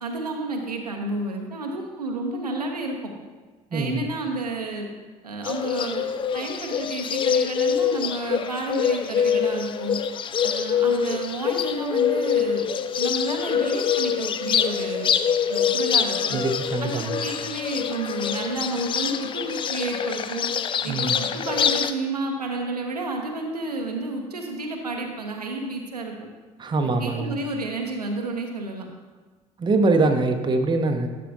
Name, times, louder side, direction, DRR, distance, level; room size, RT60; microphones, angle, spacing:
voice 1, 0.0-3.1 3.7-4.9 5.2-6.0 6.3-10.0 10.4-12.7 12.9-15.1 15.5-16.4 16.8-20.5 20.8-26.3 26.8-28.8, right 2 dB, 85° right, 2 dB, 0.7 m, -31 dB
voice 2, 3.7-4.1 16.3-17.2 20.8-21.3 26.6-27.4 29.6-31.1, right 3 dB, 25° right, 5 dB, 0.8 m, -23 dB
Bird, 5.4-21.9, left 7 dB, 25° left, 0.4 m, -25 dB
11.0 x 6.6 x 2.7 m, 1.3 s
figure-of-eight pair, 60°, 20 cm